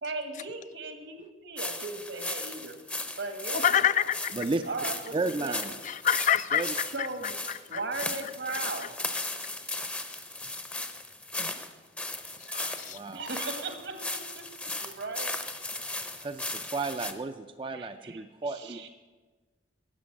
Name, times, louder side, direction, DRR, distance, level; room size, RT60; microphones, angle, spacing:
voice 1, 0.0-3.8 4.6-5.8 6.9-7.4 7.7-8.9 11.4-11.5 13.1-15.4 17.7-18.9, right 3 dB, 75° right, 7 dB, 1.6 m, -38 dB
sound 1, 1.6-17.1, left 2 dB, 5° left, 0.7 m, -36 dB
voice 2, 3.5-4.4 5.8-8.9 12.4-13.0, left 9 dB, 45° left, 15 dB, 0.3 m, -29 dB
voice 3, 5.1-5.7 6.5-6.7 12.9-13.2 16.2-18.9, right 3 dB, 30° right, 8 dB, 0.4 m, -33 dB
11.5 x 8.2 x 7.6 m, 1.3 s
head